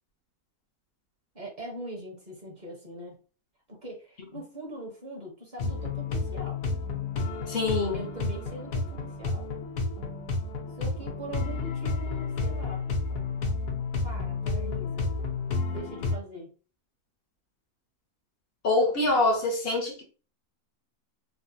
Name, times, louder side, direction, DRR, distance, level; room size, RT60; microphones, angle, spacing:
voice 1, 1.3-3.2 3.7-6.6 7.9-9.5 10.7-12.8 14.0-15.1 15.7-16.5, right 1 dB, 35° right, -1 dB, 0.8 m, -41 dB
sound 1, 5.6-16.2, left 3 dB, 90° left, 1.3 m, -31 dB
voice 2, 7.5-8.0 18.6-20.0, left 2 dB, 55° left, 1 dB, 0.7 m, -25 dB
3.3 x 2.2 x 2.6 m, 0.36 s
omnidirectional pair, 1.7 m